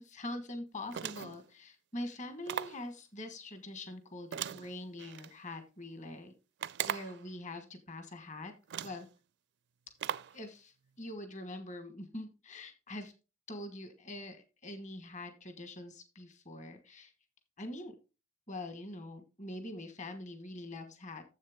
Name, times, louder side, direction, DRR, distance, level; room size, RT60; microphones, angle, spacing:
voice 1, 0.0-6.3 6.8-8.5 8.8-9.1 10.3-13.1 13.5-17.1 17.6-17.9 18.5-21.2, left 1 dB, 35° left, 8 dB, 1.4 m, -44 dB
sound 1, 0.9-1.5 2.5-2.9 4.3-5.3 6.6-7.2 8.1-8.2 8.7-9.1 10.0-10.4, right 9 dB, 60° right, 0.4 m, -38 dB
10.5 x 7.6 x 3.6 m, 0.30 s
head